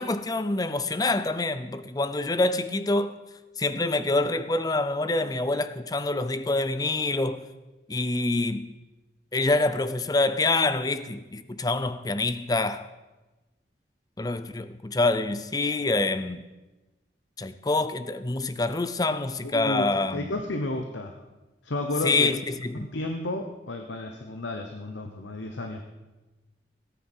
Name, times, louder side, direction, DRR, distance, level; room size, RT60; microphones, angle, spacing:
voice 1, 0.0-3.1 3.6-7.4 7.9-8.7 9.3-12.8 14.2-16.4 17.4-20.4 22.0-22.9, left 2 dB, 20° left, 0.5 m, -26 dB
voice 2, 19.4-19.9 20.1-21.1 21.6-22.4 22.7-25.9, left 2 dB, 80° left, 1.0 m, -32 dB
18.0 x 9.3 x 4.5 m
head